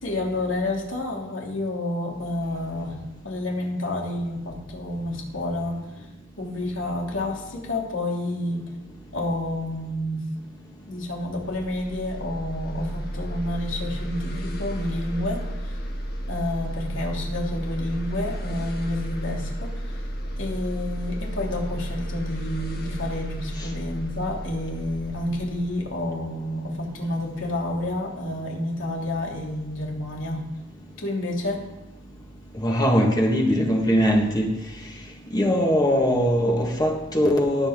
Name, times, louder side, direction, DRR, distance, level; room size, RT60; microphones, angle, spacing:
voice 1, 0.0-3.0 3.2-5.8 6.4-8.6 9.1-10.2 10.9-15.8 16.3-20.0 20.4-30.4 31.0-31.6, left 1 dB, 70° left, 3.0 m, -29 dB
sound 1, 11.3-26.7, equal, 55° left, 1.8 m, -33 dB
voice 2, 32.6-34.5 35.3-37.7, equal, 20° left, 1.6 m, -21 dB
18.5 x 7.9 x 3.7 m
head